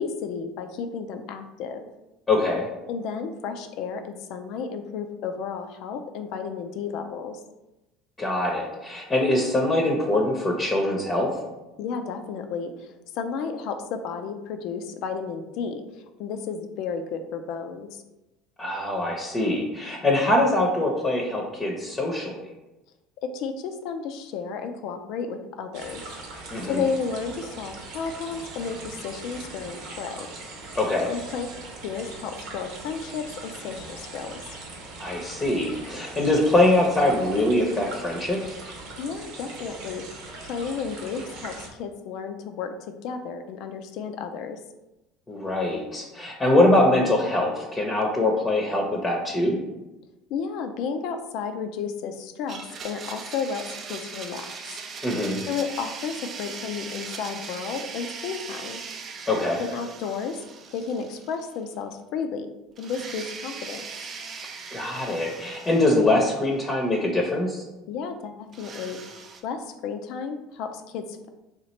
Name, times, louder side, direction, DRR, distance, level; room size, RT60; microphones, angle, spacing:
voice 1, 0.0-1.9 2.9-7.4 11.8-15.8 16.2-18.0 23.2-26.0 26.6-30.3 31.1-31.5 31.8-34.4 39.0-40.1 40.5-42.7 43.0-44.6 50.3-54.8 55.5-58.8 59.6-60.4 60.7-62.5 62.8-63.8 67.9-69.0 69.4-71.3, left 6 dB, 65° left, 7 dB, 0.4 m, -32 dB
voice 2, 2.3-2.7 8.2-11.3 18.6-22.4 26.5-26.8 30.7-31.1 35.0-38.5 45.3-49.6 55.0-55.4 59.3-59.6 64.7-67.6, left 1 dB, 25° left, -1 dB, 0.7 m, -23 dB
sound 1, 25.7-41.7, right 2 dB, 70° right, 0.8 m, -40 dB
Domestic sounds home sounds, 52.5-61.6 61.9-62.0 62.8-66.7 68.5-69.4, right 5 dB, 40° right, 0.4 m, -39 dB
2.9 x 2.4 x 4.2 m, 1.0 s
supercardioid pair, 90°, 0 cm